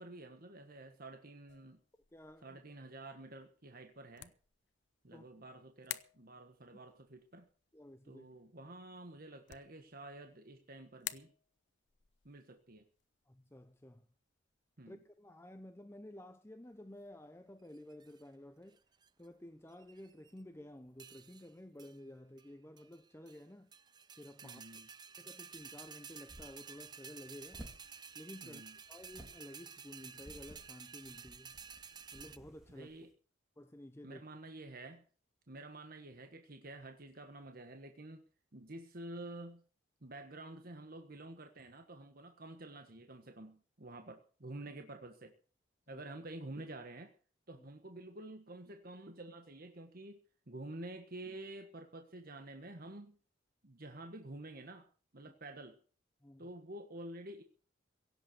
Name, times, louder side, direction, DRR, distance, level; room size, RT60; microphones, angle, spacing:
voice 1, 0.0-1.8 2.4-4.3 5.0-7.5 8.0-11.3 12.2-12.9 14.8-15.0 24.4-24.9 28.4-28.8 32.7-33.1 34.0-35.0 35.5-38.2 38.5-39.6 40.0-45.3 45.9-47.1 47.5-53.2 53.6-54.9 55.1-55.8 56.4-57.4, right 2 dB, 50° right, 1.4 m, -49 dB
sound 1, 1.5-15.6, left 13 dB, 65° left, 0.8 m, -54 dB
voice 2, 2.1-2.6 5.1-5.2 7.7-8.3 13.3-14.1 14.9-18.8 19.2-23.7 24.2-24.8 25.2-28.6 28.9-31.6 32.1-32.9 33.6-34.3 45.9-46.0 47.6-47.7 55.2-55.3 56.2-56.5, left 1 dB, 15° left, 0.7 m, -53 dB
sound 2, 17.7-18.2 18.8-19.3 19.7-20.4 21.0-21.5 21.8-22.0 22.4-22.5 22.8-23.4 23.7-32.4, right 6 dB, 25° right, 0.6 m, -52 dB
sound 3, 25.5-33.1, right 1 dB, ahead, 3.6 m, -57 dB
17.0 x 7.6 x 8.0 m
head